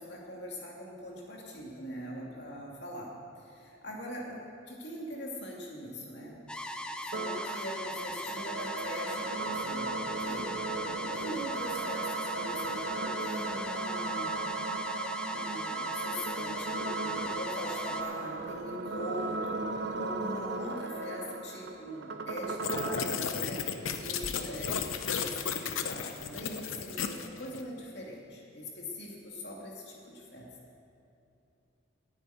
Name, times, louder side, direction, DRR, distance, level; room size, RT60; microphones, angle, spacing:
voice 1, 0.0-6.8 7.1-10.5 11.0-14.4 15.3-30.5, equal, 55° left, -2 dB, 2.5 m, -42 dB
sound 1, 6.5-18.0, equal, 5° left, 0.5 m, -39 dB
sound 2, 7.1-23.1, right 3 dB, 60° right, 0.7 m, -36 dB
sound 3, 22.6-27.6, left 7 dB, 85° left, 0.7 m, -34 dB
9.9 x 9.1 x 9.2 m, 2.7 s
head